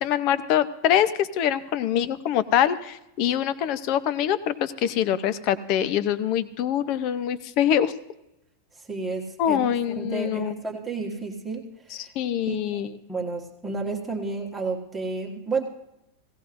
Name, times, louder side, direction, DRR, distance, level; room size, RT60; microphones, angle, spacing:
voice 1, 0.0-7.9 9.4-10.6 11.9-12.9, left 10 dB, 35° left, 14 dB, 0.6 m, -24 dB
voice 2, 8.9-12.1 12.4-12.8 13.1-15.6, right 4 dB, 5° right, -2 dB, 1.5 m, -31 dB
17.5 x 17.0 x 2.6 m, 0.88 s
supercardioid pair, 180°, 0 cm